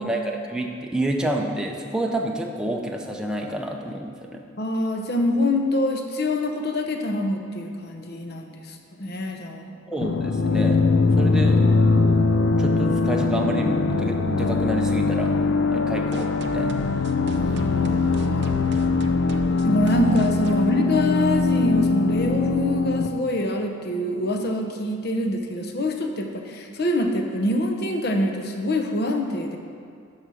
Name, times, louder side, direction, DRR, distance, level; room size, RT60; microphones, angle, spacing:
voice 1, 0.0-4.4 9.9-10.8 11.2-11.7 12.6-15.4 15.7-16.8, right 1 dB, 5° right, 0 dB, 0.6 m, -28 dB
voice 2, 4.6-9.7 17.3-18.6 19.6-29.6, left 1 dB, 50° left, 3 dB, 0.9 m, -25 dB
sound 1, 10.0-23.1, left 3 dB, 65° left, 0.5 m, -21 dB
sound 2, 16.1-21.6, right 3 dB, 55° right, 0.5 m, -39 dB
12.5 x 4.9 x 6.3 m, 2.3 s
head